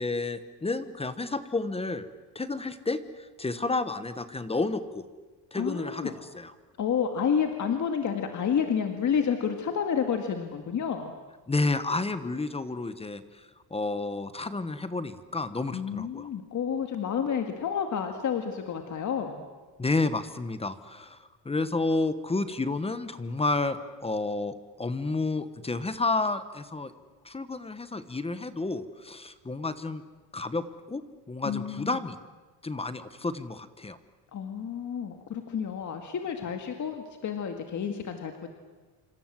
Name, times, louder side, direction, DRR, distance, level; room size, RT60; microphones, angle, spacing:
voice 1, 0.0-2.1 2.3-5.0 5.5-6.5 11.5-16.3 19.8-21.2 21.4-26.9 27.2-30.0 30.3-31.0 31.3-32.2 32.6-34.0, left 3 dB, 15° left, 12 dB, 1.1 m, -31 dB
voice 2, 5.5-6.1 6.8-11.1 15.7-19.4 31.4-32.0 34.3-38.5, left 7 dB, 45° left, 5 dB, 2.1 m, -30 dB
27.5 x 26.0 x 7.6 m, 1.3 s
cardioid pair, 150°, 41 cm